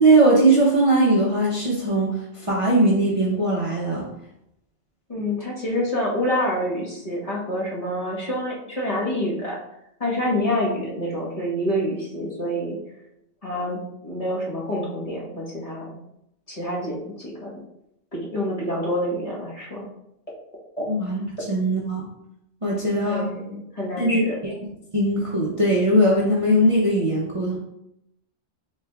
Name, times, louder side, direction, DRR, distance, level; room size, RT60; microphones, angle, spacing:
voice 1, 0.0-4.0 20.9-21.2 21.5-22.1 22.6-23.3 24.0-24.5 24.9-27.6, right 1 dB, 35° right, -5 dB, 0.7 m, -20 dB
voice 2, 5.1-9.6 10.0-12.8 13.4-15.9 16.5-17.5 18.1-19.8 20.8-20.9 23.1-24.4, equal, 30° left, -7 dB, 1.3 m, -27 dB
6.8 x 3.2 x 2.3 m, 0.81 s
omnidirectional pair, 1.2 m